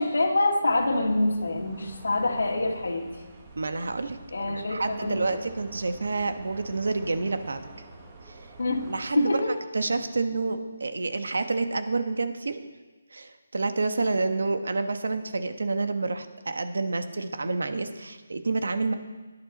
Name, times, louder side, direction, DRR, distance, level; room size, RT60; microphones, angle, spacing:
voice 1, 0.0-3.1 4.3-5.4 8.6-8.9 9.2-9.5, left 2 dB, 85° left, 0 dB, 2.3 m, -25 dB
sound 1, 0.7-9.1, right 3 dB, 15° right, 1.2 m, -48 dB
voice 2, 3.6-4.2 4.5-7.6 8.3-8.5 8.8-12.6 13.1-18.9, right 3 dB, 80° right, 8 dB, 1.3 m, -29 dB
17.5 x 11.0 x 4.2 m, 1.3 s
hypercardioid pair, 175°, 0 cm